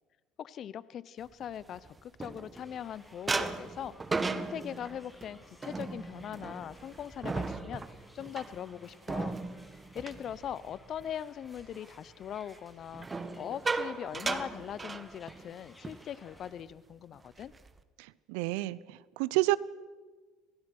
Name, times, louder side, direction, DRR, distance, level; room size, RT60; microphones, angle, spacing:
voice 1, 0.4-3.9 4.3-7.9 8.1-9.4 9.9-13.1 13.4-17.5, left 9 dB, 50° left, 19 dB, 0.9 m, -41 dB
sound 1, 1.4-2.8 3.3-11.1 11.5-11.8 12.9-15.5 15.8-16.0 16.4-16.6 17.1-17.8, right 3 dB, 25° right, 1.7 m, -37 dB
sound 2, 2.5-16.5, equal, 5° left, 6.4 m, -58 dB
voice 2, 18.0-19.6, right 19 dB, 70° right, 20 dB, 0.7 m, -30 dB
26.0 x 18.0 x 6.1 m, 1.3 s
hypercardioid pair, 60°, 0 cm